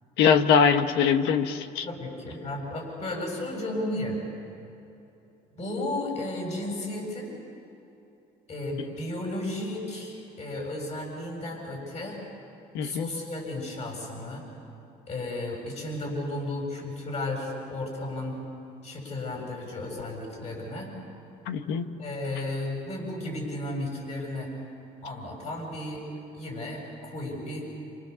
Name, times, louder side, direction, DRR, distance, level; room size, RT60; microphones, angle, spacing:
voice 1, 0.2-1.9 12.7-13.1 21.5-21.8, left 6 dB, 90° left, 8 dB, 1.4 m, -22 dB
voice 2, 1.8-4.2 5.5-7.4 8.5-12.2 12.8-14.4 15.1-18.4 18.8-20.9 22.0-24.5 25.0-26.0 26.3-27.7, left 1 dB, 40° left, 0 dB, 7.8 m, -34 dB
28.0 x 27.0 x 7.1 m, 2.8 s
cardioid pair, 110°, 17 cm